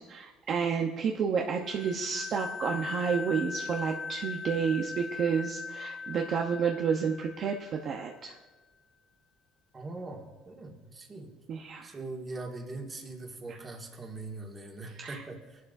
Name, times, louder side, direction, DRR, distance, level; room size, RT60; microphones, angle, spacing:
voice 1, 0.1-8.3 11.5-11.9 13.5-13.6 15.0-15.2, right 6 dB, 45° right, 1 dB, 0.9 m, -30 dB
sound 1, 1.6-8.1, left 5 dB, 10° left, 1.3 m, -40 dB
voice 2, 9.7-11.3 11.8-15.6, right 2 dB, 20° right, 1 dB, 2.0 m, -41 dB
21.5 x 11.5 x 2.7 m, 1.3 s
cardioid pair, 140°, 0 cm